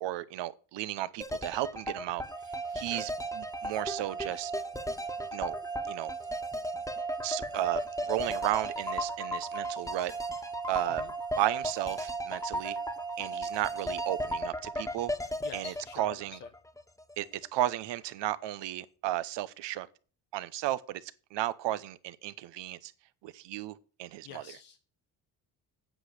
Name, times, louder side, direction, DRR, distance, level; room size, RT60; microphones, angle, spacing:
voice 1, 0.0-2.2 2.7-3.1 3.4-4.5 5.3-5.5 5.9-6.1 7.2-10.1 10.7-11.0 11.4-12.8 13.2-15.1 15.5-16.4 17.2-17.3 17.5-19.9 20.3-22.9 23.2-24.4, right 14 dB, 75° right, 0.9 m, -34 dB
sound 1, 1.2-17.1 17.4-17.5, left 1 dB, 5° left, 1.4 m, -37 dB
sound 2, 2.3-15.2, right 5 dB, 10° right, 0.5 m, -38 dB
voice 2, 2.7-3.0 10.9-11.1 15.4-16.5 24.2-24.8, left 9 dB, 85° left, 1.1 m, -48 dB
8.9 x 7.9 x 6.6 m
supercardioid pair, 75°, 43 cm